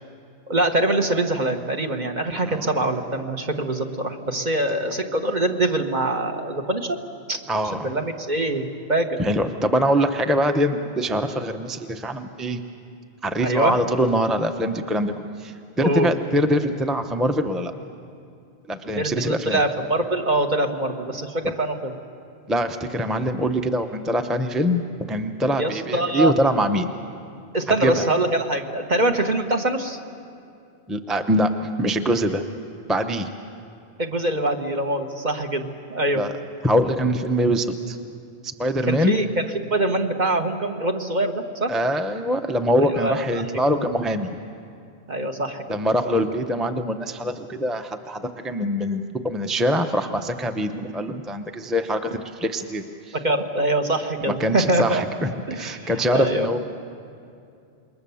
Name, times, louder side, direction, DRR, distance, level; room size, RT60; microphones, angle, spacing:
voice 1, 0.5-7.0 7.3-7.4 7.7-9.2 13.4-13.8 15.8-16.1 18.9-22.0 25.6-26.3 27.5-30.0 34.0-36.3 38.9-41.7 43.0-43.4 45.1-45.8 53.2-55.0 55.5-56.6, right 1 dB, 45° right, 4 dB, 1.4 m, -24 dB
voice 2, 2.4-2.8 7.5-7.9 9.2-12.6 13.2-17.7 18.7-19.6 21.4-21.5 22.5-26.9 27.7-28.1 30.9-32.4 32.9-33.3 36.1-36.3 36.6-38.0 38.4-39.2 41.7-44.4 45.7-53.2 54.3-56.6, equal, ahead, 6 dB, 0.7 m, -23 dB
27.5 x 21.5 x 7.1 m, 2.5 s
omnidirectional pair, 1.1 m